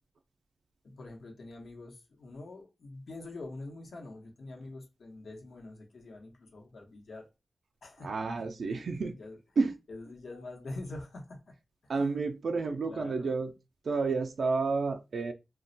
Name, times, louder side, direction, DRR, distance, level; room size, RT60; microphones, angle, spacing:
voice 1, 0.8-7.3 7.8-8.5 9.0-9.4 9.9-11.6 11.8-12.3 12.7-13.4, left 2 dB, 90° left, 0.9 m, -45 dB
voice 2, 8.0-9.1 9.6-9.7 11.9-13.5 13.9-15.3, right 4 dB, 90° right, 0.3 m, -30 dB
2.2 x 2.1 x 3.8 m
wide cardioid pair, 95°, 0 cm